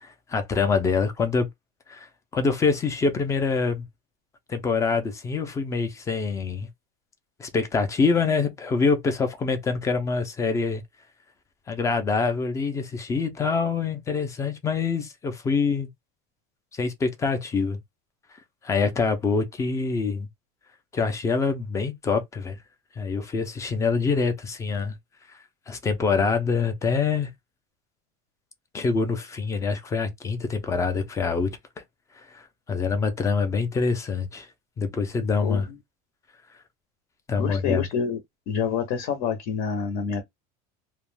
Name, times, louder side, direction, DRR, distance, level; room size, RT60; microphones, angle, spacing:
voice 1, 0.0-1.5 1.9-3.9 4.5-6.7 7.4-10.8 11.7-15.9 16.8-17.8 18.6-20.3 20.9-22.6 23.0-24.9 25.7-27.3 28.7-31.5 32.2-34.5 34.8-35.7 37.3-37.8, left 4 dB, 15° left, 0.4 m, -25 dB
voice 2, 35.4-35.8 37.4-38.2 38.5-40.2, left 6 dB, 60° left, 0.7 m, -27 dB
2.3 x 2.1 x 3.2 m
cardioid pair, 165°, 19 cm